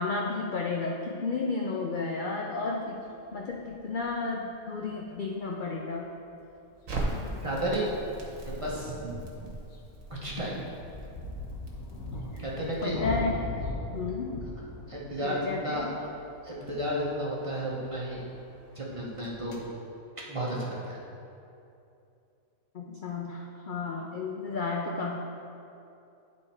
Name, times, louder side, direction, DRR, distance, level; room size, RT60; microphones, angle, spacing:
voice 1, 0.0-3.0 3.3-6.1 6.9-7.3 12.3-12.4 12.8-13.5 13.9-14.4 15.2-15.9 22.7-25.2, left 3 dB, 60° left, -1 dB, 0.5 m, -32 dB
sound 1, 3.0-3.1 3.5-4.1 6.0-6.1 6.4-6.5 6.7-6.8 7.0-8.3 8.7-18.8 19.0-19.6, left 2 dB, 85° left, 1.3 m, -40 dB
Crackle, 6.9-13.0, right 2 dB, 65° right, 1.5 m, -39 dB
voice 2, 7.4-7.9 8.4-9.0 10.1-10.6 12.4-13.1 14.9-16.0 16.4-18.2 18.7-19.6 20.3-21.0, right 1 dB, 25° right, -5 dB, 0.9 m, -32 dB
9.9 x 4.2 x 4.3 m, 2.7 s
omnidirectional pair, 1.5 m